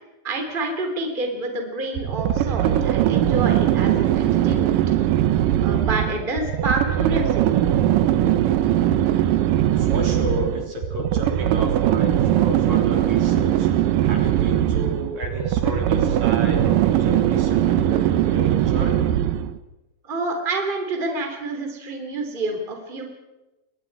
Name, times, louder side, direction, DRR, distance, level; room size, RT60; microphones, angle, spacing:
voice 1, 0.2-4.8 5.6-7.6 20.0-23.1, right 2 dB, 15° right, 3 dB, 3.1 m, -28 dB
sound 1, 2.0-19.6, right 11 dB, 75° right, 2.5 m, -20 dB
voice 2, 9.8-19.1, equal, 55° right, 1 dB, 4.8 m, -32 dB
28.5 x 22.5 x 4.8 m, 1.0 s
omnidirectional pair, 4.0 m